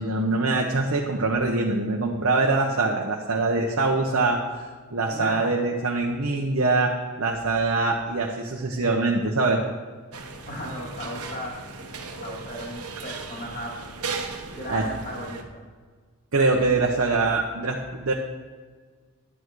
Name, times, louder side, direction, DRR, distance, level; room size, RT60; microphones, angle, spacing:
voice 1, 0.0-4.4 4.9-6.9 7.2-9.6 14.7-14.8 16.3-18.1, right 3 dB, 65° right, -1 dB, 1.0 m, -23 dB
voice 2, 5.1-5.6 10.4-11.6 12.2-13.9 14.5-15.6, equal, 40° left, -2 dB, 2.6 m, -36 dB
sound 1, 10.1-15.4, right 4 dB, 85° right, 1.1 m, -37 dB
11.0 x 9.0 x 4.7 m, 1.5 s
head